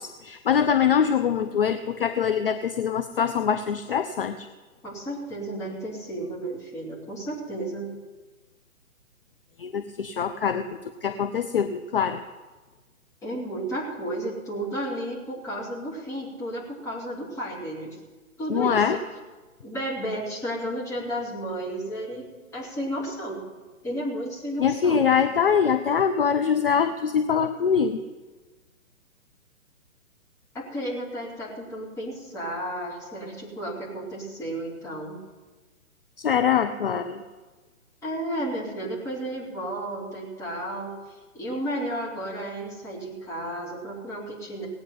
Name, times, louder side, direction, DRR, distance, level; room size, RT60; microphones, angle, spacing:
voice 1, 0.0-4.5 9.6-10.7 11.0-12.2 18.5-19.0 24.6-28.0 36.2-37.2, left 7 dB, 40° left, 9 dB, 0.6 m, -23 dB
voice 2, 4.8-7.9 13.2-18.0 18.4-19.0 19.6-23.4 23.8-25.1 30.5-35.2 38.0-44.7, right 1 dB, 5° left, -6 dB, 2.9 m, -33 dB
18.0 x 8.9 x 5.7 m, 1.3 s
figure-of-eight pair, 130°, 42 cm